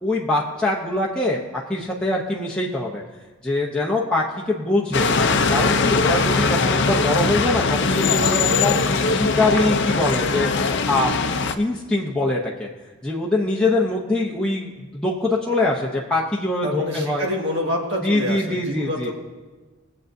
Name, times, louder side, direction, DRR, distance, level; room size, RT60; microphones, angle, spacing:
voice 1, 0.0-3.0 3.4-5.1 5.5-11.1 11.6-12.7 13.0-17.3 18.0-19.1, left 2 dB, 5° left, -4 dB, 0.7 m, -23 dB
sound 1, 4.9-11.5, left 4 dB, 55° left, 0.6 m, -20 dB
voice 2, 16.6-19.1, equal, 55° right, 0 dB, 1.7 m, -27 dB
22.5 x 7.6 x 2.7 m, 1.3 s
head